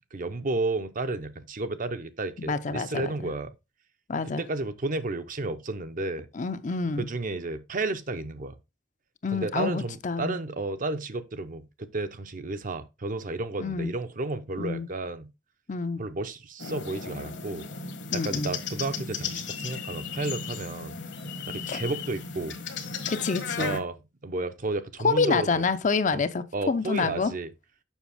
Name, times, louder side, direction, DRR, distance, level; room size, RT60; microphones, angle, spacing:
voice 1, 0.1-3.5 4.4-6.3 7.0-8.6 9.3-15.3 16.0-17.7 18.1-21.0 21.5-22.6 23.6-23.9 24.2-25.6 26.1-26.2 26.5-27.5, right 2 dB, 45° right, 0.7 m, -32 dB
voice 2, 2.4-3.3 4.1-4.4 6.3-7.1 9.2-10.4 13.6-13.9 14.6-14.9 15.7-16.0 18.1-18.5 21.7-21.8 23.1-23.8 25.0-27.3, left 4 dB, 40° left, 0.5 m, -27 dB
sound 1, 16.6-23.8, left 5 dB, 65° left, 1.3 m, -35 dB
7.2 x 5.8 x 3.5 m
head